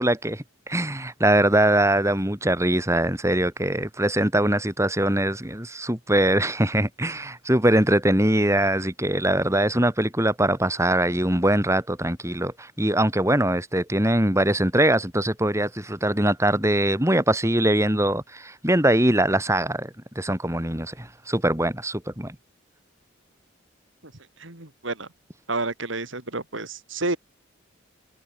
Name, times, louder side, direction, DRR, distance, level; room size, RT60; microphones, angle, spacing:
voice 1, 0.0-22.3, right 1 dB, 15° right, 5.1 m, -22 dB
voice 2, 24.4-25.1 25.5-27.2, right 2 dB, 65° right, 3.6 m, -30 dB
head